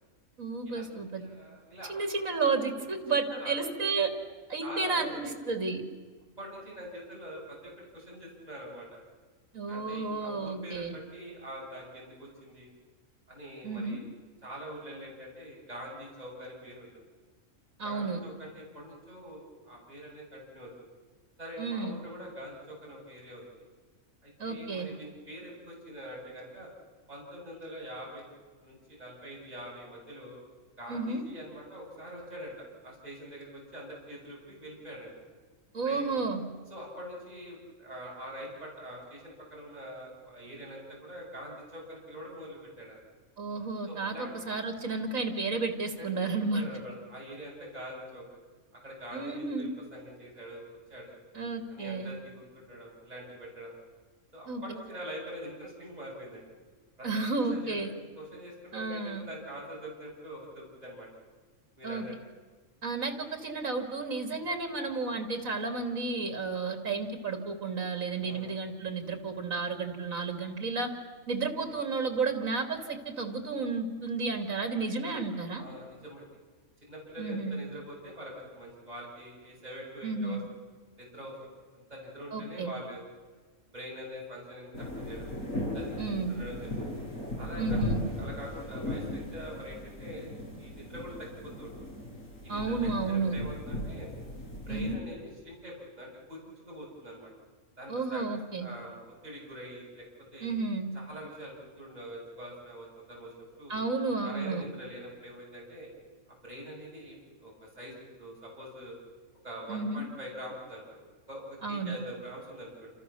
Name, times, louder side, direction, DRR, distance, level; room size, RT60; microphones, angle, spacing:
voice 1, 0.4-1.2 1.9-4.1 4.5-5.8 9.5-11.0 13.6-14.0 17.8-18.2 21.6-22.0 24.4-24.9 30.9-31.2 35.7-36.4 43.4-46.7 49.1-49.7 51.3-52.1 54.5-54.6 57.0-57.9 58.7-59.3 61.8-62.1 62.8-70.9 71.3-75.6 77.2-77.5 80.0-80.5 82.3-82.7 86.0-86.4 87.6-88.0 92.5-93.4 94.7-95.0 97.9-98.7 100.4-100.9 103.7-104.7 109.7-110.0 111.6-112.0, right 4 dB, 80° right, 5 dB, 3.0 m, -32 dB
voice 2, 1.1-2.0 2.9-3.5 4.6-5.3 6.4-8.9 9.7-12.7 13.3-14.1 14.4-17.0 17.8-20.9 21.4-23.7 24.2-26.7 27.1-28.3 28.6-30.4 30.8-35.1 35.8-36.2 36.7-43.0 43.9-44.5 46.0-48.4 48.8-50.6 50.9-51.2 51.7-53.8 54.3-56.5 57.0-57.8 58.2-61.1 61.8-62.1 64.3-64.5 68.2-68.5 75.6-76.3 76.8-80.4 81.0-83.1 83.7-85.3 85.7-86.7 87.4-90.3 90.6-91.7 92.4-94.1 94.7-97.3 97.8-100.1 100.3-100.5 100.9-103.3 103.6-103.8 104.2-105.9 106.3-107.2 107.4-109.0 109.4-111.0 111.3-112.9, equal, 30° right, -4 dB, 7.1 m, -44 dB
sound 1, 84.7-94.9, left 1 dB, 75° left, 6.4 m, -37 dB
28.0 x 28.0 x 7.1 m, 1.4 s
omnidirectional pair, 1.4 m